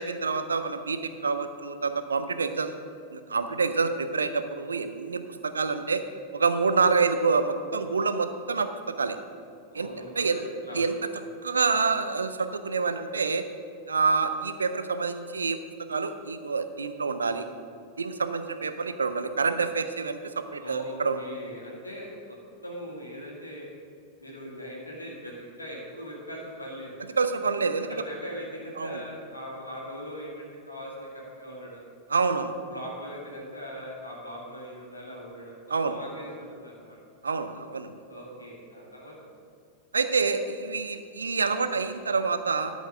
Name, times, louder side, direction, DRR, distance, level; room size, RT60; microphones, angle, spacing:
voice 1, 0.0-2.8 3.1-6.0 6.3-8.7 9.0-9.2 9.7-9.9 10.2-10.5 10.7-10.9 11.4-13.4 13.9-15.6 15.9-17.4 18.0-21.2 27.2-27.9 28.8-29.0 32.1-32.6 35.7-36.0 37.2-37.9 39.9-42.7, right 4 dB, 75° right, 10 dB, 0.6 m, -27 dB
voice 2, 9.7-10.9 20.6-22.4 22.6-23.7 24.2-27.0 27.9-31.8 32.7-35.6 35.9-37.0 38.1-39.3, equal, 85° left, -4 dB, 2.3 m, -40 dB
12.5 x 5.3 x 6.3 m, 2.4 s
figure-of-eight pair, 90°, 0 cm